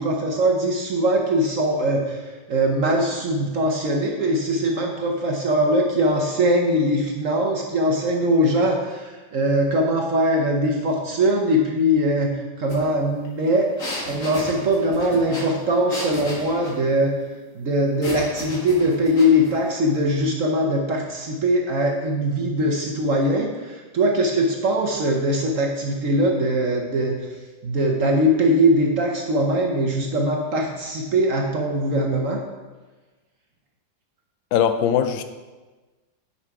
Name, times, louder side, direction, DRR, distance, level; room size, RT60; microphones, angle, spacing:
voice 1, 0.0-13.7 14.0-17.1 17.5-27.2 27.6-32.4, equal, 50° right, 1.0 m, -21 dB
sound 1, 12.7-12.8 13.1-16.8 18.0-19.5, left 1 dB, 45° left, 1.9 m, -34 dB
voice 2, 34.5-35.2, left 8 dB, 80° left, 1.3 m, -20 dB
9.7 x 5.6 x 4.7 m
omnidirectional pair, 2.1 m